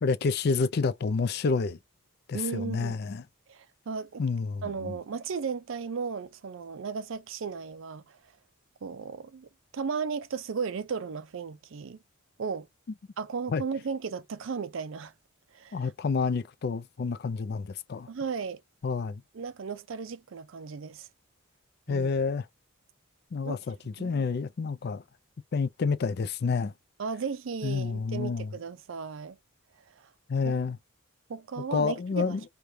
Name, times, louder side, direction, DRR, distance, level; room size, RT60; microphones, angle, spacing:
voice 1, 0.0-1.8 2.3-3.2 4.2-5.0 13.5-13.6 15.7-18.1 18.8-19.2 21.9-22.4 23.3-25.0 25.5-26.7 27.6-28.5 30.3-30.8 31.7-32.4, left 4 dB, 50° left, 0.4 m, -29 dB
voice 2, 2.3-3.0 3.5-4.2 4.6-8.2 8.8-12.0 12.4-12.7 13.2-15.1 15.5-15.9 18.1-18.6 19.3-21.1 21.9-22.1 23.4-23.6 24.0-24.2 27.0-29.4 30.0-30.1 30.4-30.6 31.3-32.4, right 5 dB, 65° right, 0.4 m, -35 dB
4.8 x 2.3 x 2.7 m
head